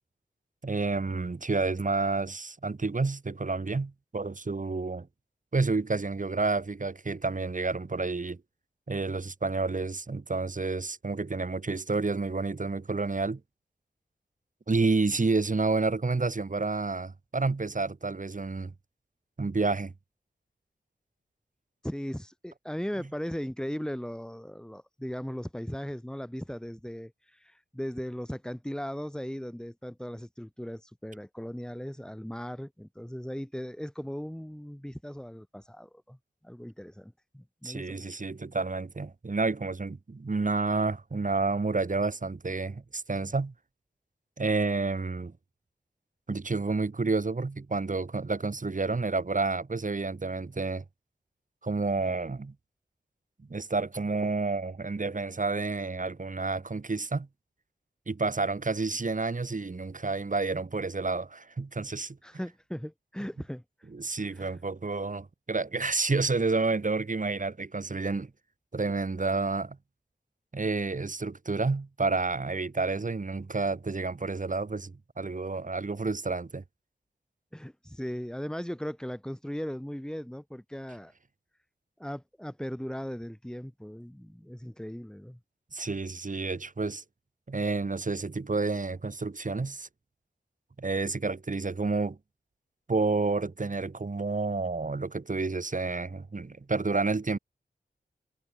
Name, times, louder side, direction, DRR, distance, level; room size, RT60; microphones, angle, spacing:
voice 1, 0.6-5.1 5.5-8.4 8.9-13.4 14.7-18.7 19.4-19.9 37.6-43.5 44.4-45.3 46.3-50.8 51.6-52.5 53.5-57.3 58.1-62.2 63.9-68.3 68.7-69.8 70.5-76.6 85.7-87.0 87.5-89.9 90.8-92.2 92.9-97.4, right 3 dB, 50° right, 4.2 m, -30 dB
voice 2, 21.8-36.2 36.4-38.0 62.2-63.6 64.3-64.6 77.5-81.1 82.0-85.4, equal, 5° left, 5.4 m, -38 dB
wide cardioid pair, 70°, 17 cm